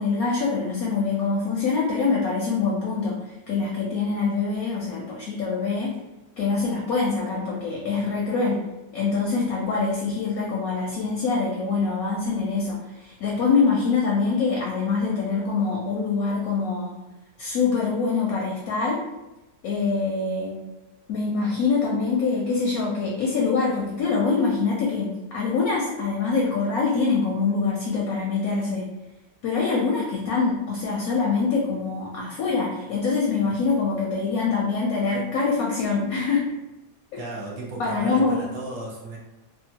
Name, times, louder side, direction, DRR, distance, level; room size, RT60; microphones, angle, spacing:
voice 1, 0.0-3.2 3.5-5.9 6.4-8.7 8.9-17.0 17.4-19.0 19.6-20.5 21.1-25.1 25.3-28.8 29.4-36.5 37.8-38.4, left 4 dB, 70° left, -2 dB, 0.9 m, -24 dB
voice 2, 37.2-39.2, right 2 dB, 60° right, -4 dB, 1.1 m, -35 dB
2.9 x 2.3 x 2.7 m, 1.0 s
omnidirectional pair, 1.8 m